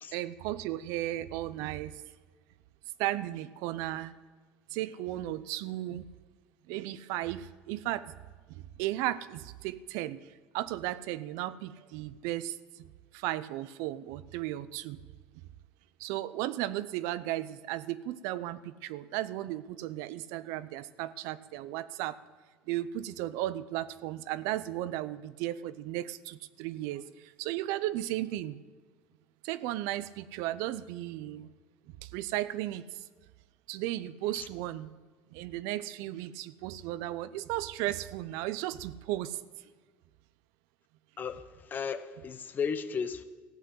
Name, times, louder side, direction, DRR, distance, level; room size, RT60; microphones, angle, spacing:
voice 1, 0.1-1.9 3.0-4.1 4.7-6.1 6.7-8.1 8.5-10.2 10.5-15.0 16.0-22.2 22.7-28.6 29.4-31.5 32.0-32.8 33.7-34.9 35.3-39.4, right 14 dB, 75° right, 16 dB, 0.7 m, -35 dB
voice 2, 41.7-43.2, left 6 dB, 35° left, 11 dB, 1.0 m, -34 dB
14.5 x 8.2 x 7.8 m, 1.4 s
supercardioid pair, 110°, 6 cm